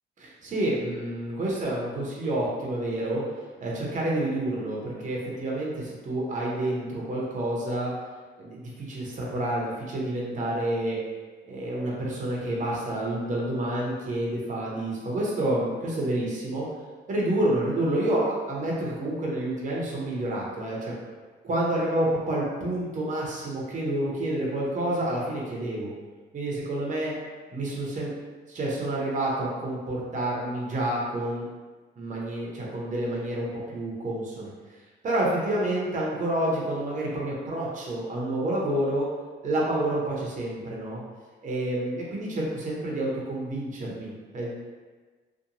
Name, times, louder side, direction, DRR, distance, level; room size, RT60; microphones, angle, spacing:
voice 1, 0.2-3.2 3.6-7.9 8.4-11.0 11.5-16.7 17.1-20.9 21.4-25.9 26.3-27.1 27.5-28.1 28.5-31.5 32.0-34.5 35.0-39.1 39.4-41.0 41.4-44.6, right 1 dB, 40° right, -4 dB, 0.7 m, -29 dB
2.8 x 2.2 x 2.6 m, 1.4 s
cardioid pair, 90°, 20 cm